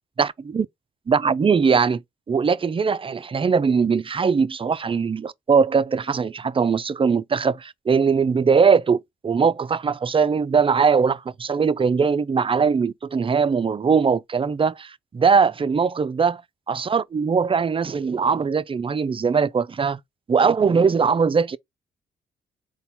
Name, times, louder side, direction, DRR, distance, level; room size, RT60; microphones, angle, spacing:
voice 1, 0.2-0.7 1.1-2.0 2.3-16.4 16.7-20.0 20.3-21.6, right 5 dB, 25° right, 0.4 m, -21 dB
4.0 x 2.3 x 4.2 m
supercardioid pair, 50°, 21 cm